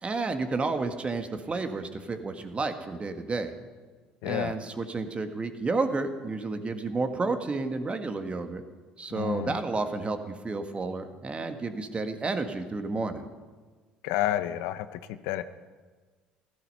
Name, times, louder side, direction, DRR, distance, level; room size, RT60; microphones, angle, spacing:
voice 1, 0.0-3.5 4.2-8.6 9.0-13.2, right 3 dB, 30° right, 7 dB, 1.6 m, -31 dB
voice 2, 4.2-4.6 9.2-9.6 14.0-15.4, left 13 dB, 70° left, 12 dB, 0.7 m, -30 dB
16.0 x 12.5 x 5.6 m, 1.4 s
hypercardioid pair, 60°, 4 cm